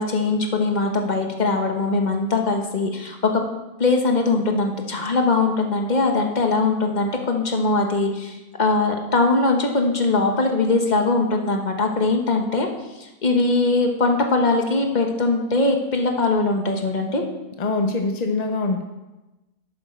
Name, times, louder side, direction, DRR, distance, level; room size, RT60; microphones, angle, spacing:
voice 1, 0.0-3.4 3.8-12.7 13.0-17.2, left 3 dB, 30° left, 3 dB, 1.1 m, -21 dB
voice 2, 17.6-18.8, left 3 dB, 50° left, 5 dB, 0.5 m, -23 dB
11.0 x 8.8 x 4.4 m, 1.1 s
omnidirectional pair, 1.6 m